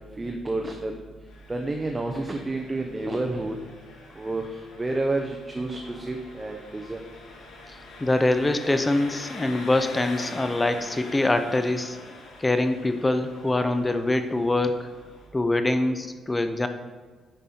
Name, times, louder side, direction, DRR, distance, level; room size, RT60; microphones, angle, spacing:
voice 1, 0.2-1.0 1.5-3.6 4.1-7.0, right 2 dB, 20° right, 3 dB, 0.8 m, -30 dB
Engine, 1.3-15.3, left 3 dB, 85° left, 1.7 m, -44 dB
voice 2, 8.0-12.0 12.4-14.9 15.3-16.7, left 2 dB, 15° left, 8 dB, 0.7 m, -24 dB
9.0 x 5.4 x 4.3 m, 1.4 s
cardioid pair, 90°, 0 cm